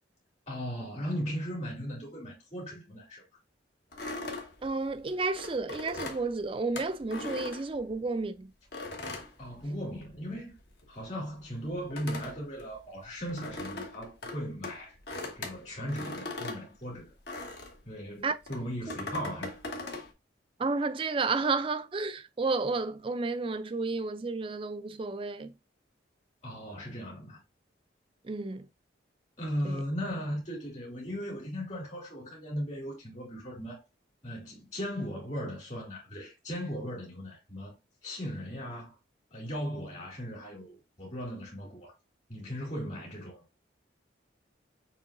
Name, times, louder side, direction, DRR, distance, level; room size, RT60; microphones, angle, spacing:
voice 1, 0.5-3.2 9.4-10.5 10.9-15.0 15.3-17.1 17.8-19.9 26.4-27.4 29.4-33.8 34.2-37.7 38.0-38.9 39.3-41.9 42.3-43.4, equal, 40° left, 2.7 m, -37 dB
sound 1, 3.9-8.2 8.7-10.2 10.5-17.8 18.4-20.1, left 2 dB, 60° left, 1.2 m, -40 dB
voice 2, 4.6-8.5 18.2-18.3 20.6-25.5 28.2-28.7 29.6-29.8, right 3 dB, 30° right, 0.4 m, -31 dB
6.8 x 3.0 x 2.5 m
head